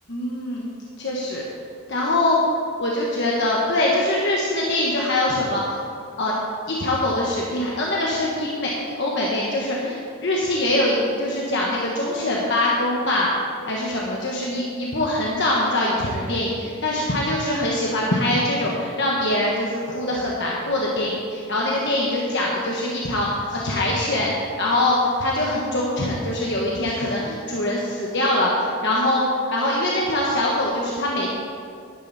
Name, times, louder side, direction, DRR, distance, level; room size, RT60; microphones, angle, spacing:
voice 1, 0.1-0.7 1.0-1.4 1.9-2.4 2.8-5.6 6.2-6.4 6.7-13.3 13.6-31.3, left 1 dB, 55° left, -3 dB, 1.3 m, -23 dB
12.0 x 10.5 x 4.2 m, 2.3 s
head